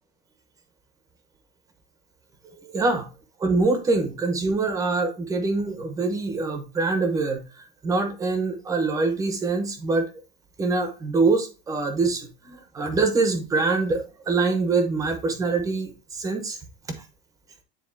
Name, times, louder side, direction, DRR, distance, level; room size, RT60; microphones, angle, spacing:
voice 1, 2.6-3.1 3.4-7.4 7.8-10.0 10.6-16.6, right 3 dB, 15° right, 1.0 m, -24 dB
9.8 x 4.0 x 2.6 m
cardioid pair, 170°, 21 cm